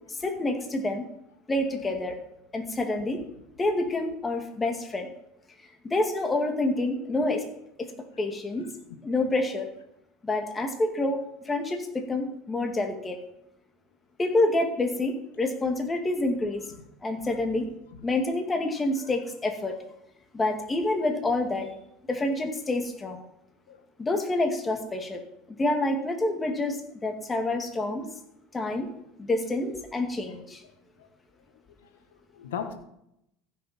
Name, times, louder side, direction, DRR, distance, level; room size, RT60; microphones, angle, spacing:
voice 1, 0.2-1.0 1.5-2.2 2.5-3.2 3.6-5.1 5.8-7.4 8.2-8.7 9.0-9.7 10.2-11.2 11.5-13.2 14.2-16.6 17.0-17.6 18.0-19.8 20.3-21.7 22.1-23.2 24.0-25.2 25.6-28.1 28.5-28.9 29.2-30.6, left 2 dB, 20° left, 4 dB, 2.2 m, -27 dB
voice 2, 8.6-9.0 17.2-17.3 17.9-18.0 19.0-19.1 23.7-23.8 30.3-30.4 30.6-30.7 31.0-31.1 31.8-32.7, left 8 dB, 85° left, 8 dB, 1.5 m, -40 dB
15.5 x 6.5 x 4.4 m, 0.80 s
hypercardioid pair, 90°, 0 cm